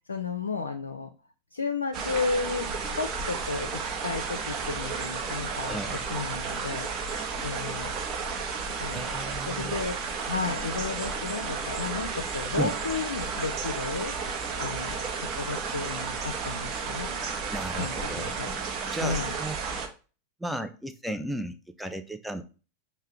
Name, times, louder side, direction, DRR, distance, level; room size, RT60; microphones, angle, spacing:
voice 1, 0.1-1.1 1.5-2.7 3.0-7.9 8.8-10.0 10.3-17.2 17.7-18.6 19.0-19.4, left 4 dB, 75° left, 0.4 m, -33 dB
sound 1, 1.9-19.9, right 5 dB, 35° right, 0.8 m, -33 dB
voice 2, 5.6-6.1 8.9-9.7 12.6-12.7 17.5-18.3 18.9-19.6 20.4-22.4, right 1 dB, 5° right, 0.4 m, -34 dB
5.4 x 2.1 x 3.5 m
figure-of-eight pair, 90°, 0 cm